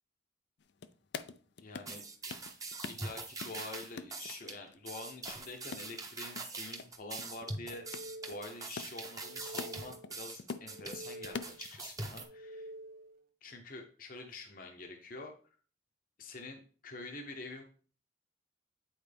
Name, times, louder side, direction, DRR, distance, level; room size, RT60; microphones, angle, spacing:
sound 1, 0.6-2.0 2.3-3.1 3.4-4.8 5.0-6.5 6.8-6.9 7.2-10.1 10.4-11.7, left 5 dB, 65° left, 0.4 m, -43 dB
voice 1, 1.6-2.0 2.8-12.7 13.4-15.3 16.2-17.6, left 2 dB, 50° left, 3 dB, 0.9 m, -47 dB
sound 2, 1.9-12.2, right 3 dB, 20° right, 0.9 m, -43 dB
sound 3, 7.5-8.7 9.0-10.2 10.5-11.7 12.1-13.2, right 1 dB, 50° right, 0.7 m, -49 dB
8.9 x 4.4 x 3.4 m, 0.41 s
head